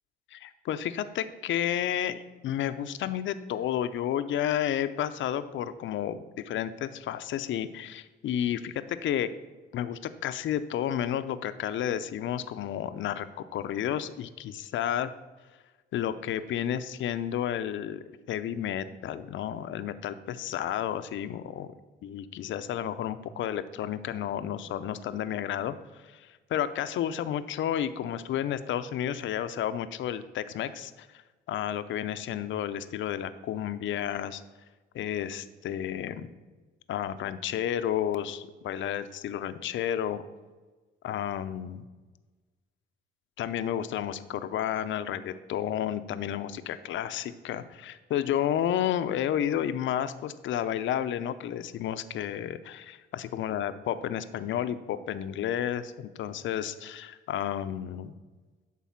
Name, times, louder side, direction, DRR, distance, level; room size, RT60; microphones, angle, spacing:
voice 1, 0.3-9.3 9.7-13.3 13.5-15.1 15.9-21.7 22.0-25.7 26.1-31.1 31.5-34.4 34.9-36.3 36.9-40.3 41.0-41.8 43.4-58.1, left 10 dB, 75° left, 12 dB, 0.6 m, -31 dB
11.5 x 4.1 x 5.7 m, 1.3 s
cardioid pair, 90°, 20 cm